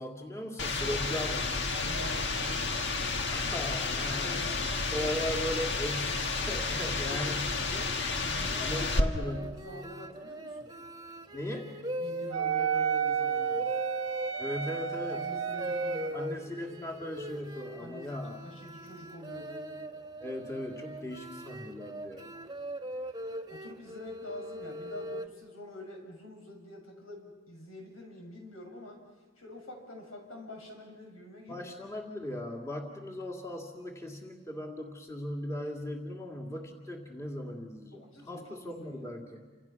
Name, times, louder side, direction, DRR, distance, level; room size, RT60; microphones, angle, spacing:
voice 1, 0.0-1.6 3.3-7.5 8.6-9.7 11.3-11.8 14.4-15.3 16.1-18.4 20.2-22.4 31.5-39.4, left 1 dB, 15° left, 1 dB, 2.3 m, -38 dB
sound 1, 0.6-9.0, left 3 dB, 60° left, 1.6 m, -31 dB
voice 2, 1.7-2.8 4.1-4.8 7.0-7.9 8.2-8.9 9.2-10.7 12.0-13.7 15.1-16.7 17.8-18.2 18.4-19.6 23.5-29.0 29.4-31.7 37.9-39.1, left 1 dB, 85° left, 2 dB, 7.3 m, -46 dB
sound 2, 8.3-25.3, right 1 dB, 20° right, 1.1 m, -40 dB
Wind instrument woodwind instrument, 12.3-16.2, right 8 dB, 65° right, 0.9 m, -31 dB
30.0 x 27.0 x 5.9 m, 1.3 s
head